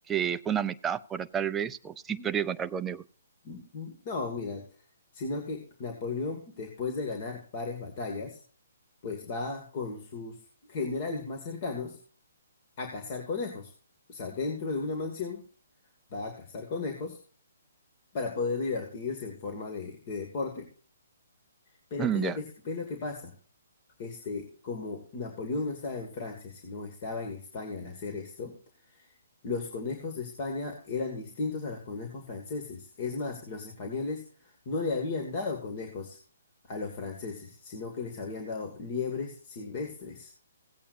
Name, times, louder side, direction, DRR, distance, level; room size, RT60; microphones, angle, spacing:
voice 1, 0.1-3.0 22.0-22.4, right 9 dB, 10° right, 10 dB, 0.5 m, -30 dB
voice 2, 3.4-4.6 5.1-8.4 9.0-10.4 10.7-12.0 12.8-13.7 14.1-15.4 16.1-17.2 18.1-20.7 21.9-23.3 24.0-28.5 29.4-34.2 34.7-36.2 36.7-40.3, left 4 dB, 40° left, 3 dB, 2.0 m, -35 dB
17.5 x 8.4 x 2.6 m, 0.40 s
hypercardioid pair, 145°, 0 cm